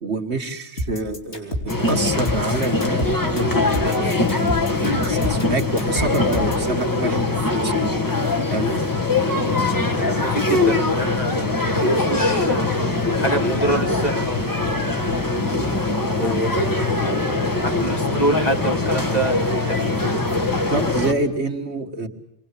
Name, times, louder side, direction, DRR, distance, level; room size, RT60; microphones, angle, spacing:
voice 1, 0.0-4.0 5.1-7.2 7.6-7.7 8.5-8.7 20.7-22.1, right 2 dB, 70° right, 3 dB, 2.2 m, -26 dB
sound 1, 0.8-6.7, equal, 70° left, 4.0 m, -29 dB
sound 2, 1.7-21.1, left 2 dB, 15° left, 1.8 m, -22 dB
voice 2, 9.2-12.8 13.1-15.0 16.1-19.9, right 2 dB, 35° left, 3 dB, 2.4 m, -27 dB
28.5 x 22.5 x 8.4 m, 0.74 s
omnidirectional pair, 1.2 m